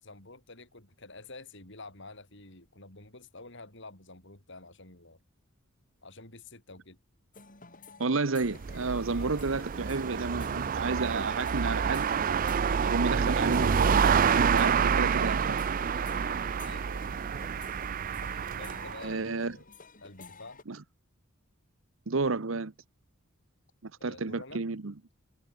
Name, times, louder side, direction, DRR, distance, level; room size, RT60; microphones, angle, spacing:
voice 1, 0.0-5.2 6.0-7.0 16.6-17.1 18.6-19.7 20.0-20.6 24.0-24.6, left 2 dB, 60° left, 7.0 m, -49 dB
sound 1, 7.3-20.6, left 4 dB, 40° left, 5.8 m, -51 dB
voice 2, 8.0-12.1 12.8-15.6 19.0-19.6 20.7-20.8 22.1-22.7 23.8-24.9, right 3 dB, 65° right, 1.0 m, -31 dB
sound 2, 8.4-19.1, right 6 dB, 40° right, 0.4 m, -28 dB
head